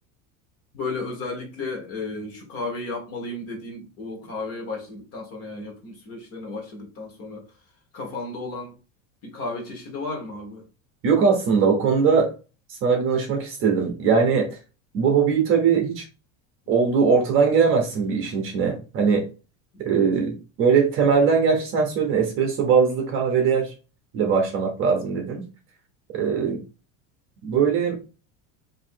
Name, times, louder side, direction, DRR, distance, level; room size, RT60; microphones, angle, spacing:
voice 1, 0.7-7.4 7.9-8.7 9.2-10.6 19.7-20.0 26.4-26.5, left 3 dB, 35° left, 1.1 m, -34 dB
voice 2, 11.0-12.3 12.8-14.5 14.9-16.1 16.7-19.2 19.8-23.7 24.1-25.4 26.1-26.6 27.4-28.0, right 6 dB, 30° right, 0.8 m, -20 dB
3.0 x 2.7 x 4.4 m
cardioid pair, 170°, 40 cm